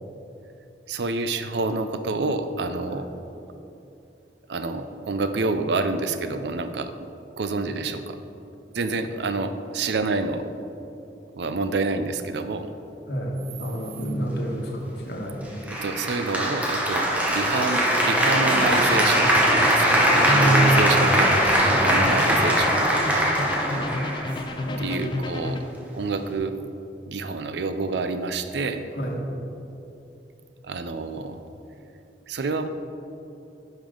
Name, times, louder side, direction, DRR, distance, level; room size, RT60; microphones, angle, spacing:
voice 1, 0.9-3.1 4.5-7.1 7.4-8.2 8.7-10.5 11.4-12.7 15.7-23.1 24.8-25.6 25.9-26.5 27.1-28.8 30.6-31.4 32.3-32.7, right 3 dB, 75° right, 9 dB, 0.5 m, -28 dB
voice 2, 13.6-15.5 20.1-20.7 21.7-22.3 23.7-24.1 24.6-24.9 29.0-29.2, right 1 dB, 70° left, 0 dB, 1.3 m, -28 dB
Applause, 15.7-24.7, equal, 10° right, 0.9 m, -21 dB
sound 1, 18.6-25.6, left 2 dB, 25° left, 0.4 m, -32 dB
10.0 x 5.3 x 3.8 m, 2.9 s
head